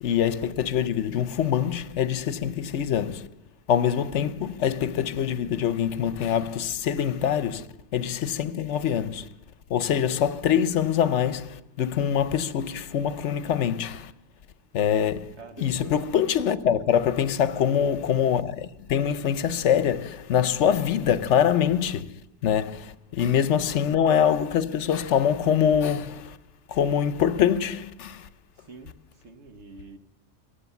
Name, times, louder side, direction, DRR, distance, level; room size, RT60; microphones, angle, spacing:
voice 1, 0.0-3.3 3.7-7.7 7.9-9.3 9.7-14.1 14.7-22.1 22.4-26.4 26.7-28.3, left 9 dB, 80° left, 1.0 m, -24 dB
voice 2, 15.4-16.0 17.5-18.2 28.6-29.0 29.2-30.0, right 5 dB, 70° right, 1.6 m, -45 dB
23.0 x 8.1 x 7.1 m
omnidirectional pair, 1.2 m